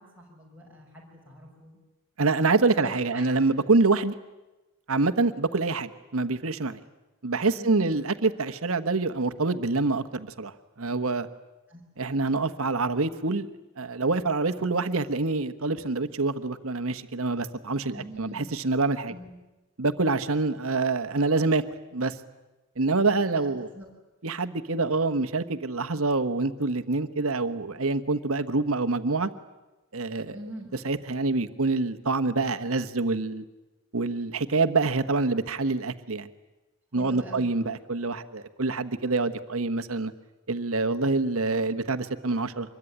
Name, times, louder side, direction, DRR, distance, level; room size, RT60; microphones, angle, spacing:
voice 1, 0.0-1.8 2.8-3.3 7.6-8.0 11.7-11.8 17.9-18.5 19.1-19.3 23.3-23.9 30.3-30.7 36.9-37.5, equal, 5° right, -4 dB, 6.6 m, -43 dB
voice 2, 2.2-4.1 4.9-6.8 7.2-11.3 12.0-13.5 13.8-19.1 19.8-21.6 21.9-22.2 22.8-23.7 24.2-29.3 29.9-30.4 30.8-33.4 33.9-36.3 36.9-40.1 40.5-42.8, right 3 dB, 75° right, 10 dB, 1.3 m, -26 dB
25.0 x 22.0 x 10.0 m, 1.1 s
head